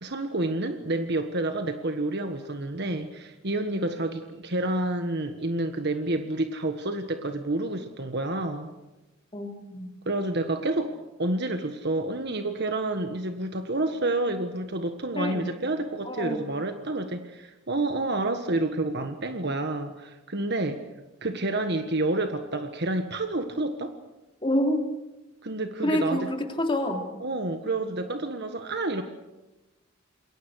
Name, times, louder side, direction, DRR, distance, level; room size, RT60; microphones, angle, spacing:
voice 1, 0.0-8.7 10.0-20.8 21.2-23.9 25.4-26.3 27.2-29.0, right 2 dB, 55° right, 6 dB, 1.5 m, -29 dB
voice 2, 9.3-9.9 15.1-15.5 16.0-16.4 24.4-24.9 25.8-27.1, left 1 dB, 25° left, 3 dB, 3.2 m, -27 dB
28.5 x 21.5 x 6.4 m, 1.0 s
head